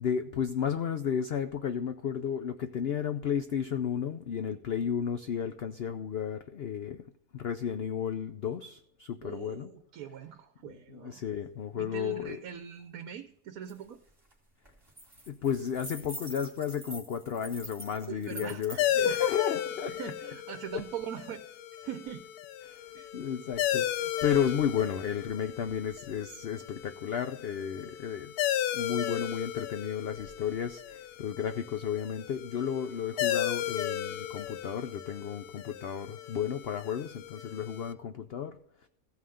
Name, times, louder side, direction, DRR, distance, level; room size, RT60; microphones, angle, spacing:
voice 1, 0.0-7.0 7.3-9.7 10.6-12.4 15.3-18.8 19.0-20.1 20.7-20.8 22.6-22.9 23.1-28.4 28.7-38.6, left 8 dB, 60° left, 9 dB, 0.6 m, -33 dB
voice 2, 9.2-11.2 11.7-14.0 18.1-19.3 19.8-22.3 22.9-23.1, right 9 dB, 70° right, 10 dB, 1.1 m, -42 dB
sound 1, 13.7-13.8 14.1-14.3 14.7-18.8, right 1 dB, 15° right, 2.5 m, -45 dB
sound 2, 18.8-37.9, left 11 dB, 85° left, 1.1 m, -35 dB
15.0 x 5.7 x 6.4 m, 0.77 s
omnidirectional pair, 1.6 m